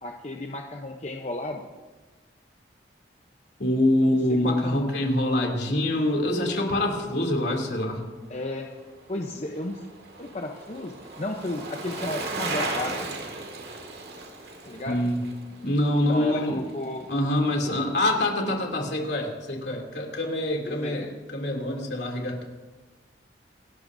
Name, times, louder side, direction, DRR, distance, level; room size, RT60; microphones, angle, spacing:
voice 1, 0.0-1.7 4.0-4.2 4.4-5.1 8.3-8.7 9.1-9.8 10.2-13.1 14.7-15.1 16.1-17.1 17.6-17.9 20.6-21.1, left 2 dB, 35° left, 2 dB, 0.8 m, -33 dB
voice 2, 3.6-8.0 14.9-15.2 15.6-16.6 17.1-22.4, left 1 dB, 70° left, 1 dB, 2.8 m, -25 dB
Bicycle, 8.6-17.0 17.3-17.4, right 3 dB, 60° right, 2.1 m, -36 dB
27.0 x 12.5 x 2.7 m, 1.3 s
head